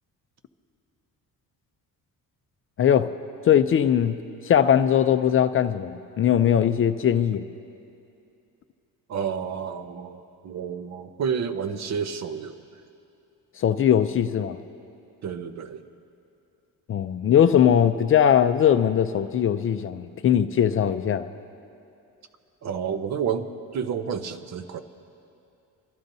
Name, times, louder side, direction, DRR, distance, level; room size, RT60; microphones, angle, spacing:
voice 1, 2.8-3.1 3.5-4.2 4.4-7.4 13.6-14.6 16.9-21.3, left 9 dB, 40° left, 10 dB, 0.4 m, -20 dB
voice 2, 9.1-12.8 15.2-15.8 22.6-24.8, right 7 dB, 50° right, 9 dB, 0.8 m, -30 dB
27.0 x 13.0 x 2.7 m, 2.6 s
cardioid pair, 150°, 35 cm